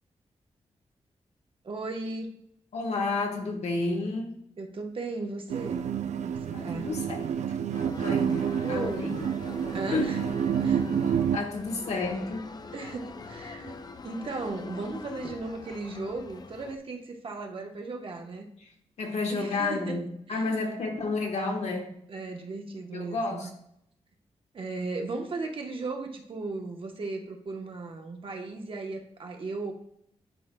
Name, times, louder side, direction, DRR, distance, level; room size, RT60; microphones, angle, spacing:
voice 1, 1.6-2.4 4.6-5.9 6.2-6.9 8.6-9.1 9.7-10.2 10.6-10.8 12.7-18.5 19.3-20.0 20.3-20.5 22.1-23.5 24.5-29.7, right 3 dB, 50° right, 3 dB, 1.0 m, -36 dB
voice 2, 2.7-4.3 6.5-7.6 8.0-9.2 9.9-10.1 11.3-12.5 18.6-18.7 19.0-22.0 22.9-23.5, left 3 dB, 70° left, 1 dB, 1.4 m, -31 dB
sound 1, 5.5-11.4, right 8 dB, 85° right, 0.4 m, -29 dB
sound 2, 7.7-16.8, left 4 dB, 35° left, 0.4 m, -43 dB
11.0 x 4.7 x 2.2 m, 0.72 s
wide cardioid pair, 140°, 12 cm